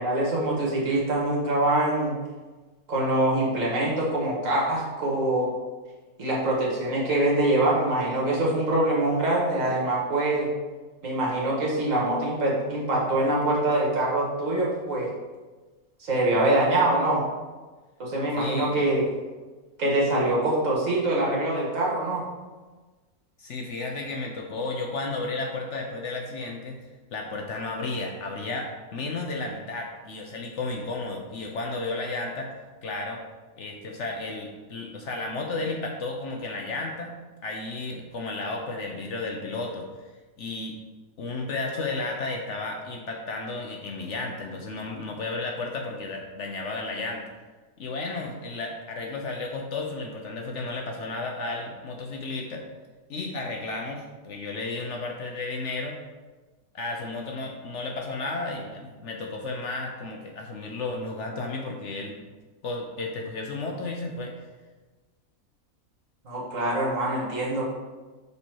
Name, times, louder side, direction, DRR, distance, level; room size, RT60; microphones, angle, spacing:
voice 1, 0.0-2.1 2.9-5.5 6.2-10.5 11.0-15.1 16.0-17.2 18.0-19.1 19.8-22.2 66.2-67.6, right 1 dB, 60° right, -4 dB, 1.8 m, -24 dB
voice 2, 18.3-18.8 23.4-26.8 27.1-32.5 32.8-33.2 33.6-37.1 37.4-40.1 40.4-40.8 41.2-47.2 47.8-52.7 53.1-56.0 56.7-62.2 62.6-64.3, left 3 dB, 60° left, 1 dB, 0.9 m, -33 dB
5.3 x 4.1 x 4.6 m, 1.3 s
omnidirectional pair, 1.6 m